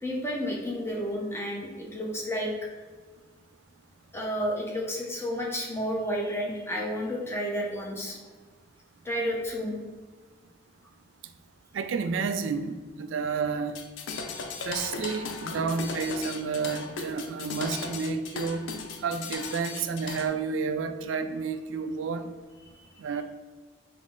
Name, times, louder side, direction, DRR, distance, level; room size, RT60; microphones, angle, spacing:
voice 1, 0.0-2.5 4.1-8.2 9.0-9.8 22.7-22.8, equal, 15° left, -2 dB, 0.7 m, -31 dB
voice 2, 11.7-13.8 14.6-18.7 19.0-22.3 23.0-23.2, right 5 dB, 90° right, 9 dB, 0.3 m, -30 dB
sound 1, 13.7-20.3, left 4 dB, 90° left, 0.5 m, -37 dB
5.5 x 2.1 x 3.6 m, 1.4 s
head